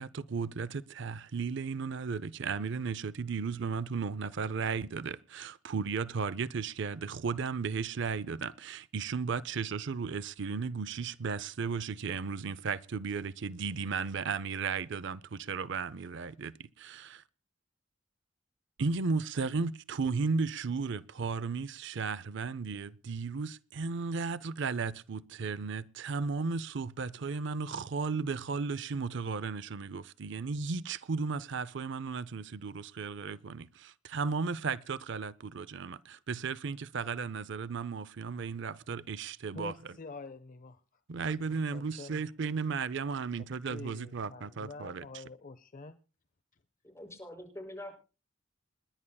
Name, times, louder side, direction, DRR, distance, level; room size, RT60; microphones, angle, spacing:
voice 1, 0.0-17.2 18.8-39.9 41.1-45.2, right 5 dB, 65° right, 0.5 m, -35 dB
voice 2, 39.5-40.8 41.5-42.3 43.7-46.0, left 3 dB, 45° left, 0.7 m, -46 dB
voice 3, 46.8-48.0, left 1 dB, 15° left, 6.0 m, -44 dB
28.5 x 11.0 x 2.3 m
head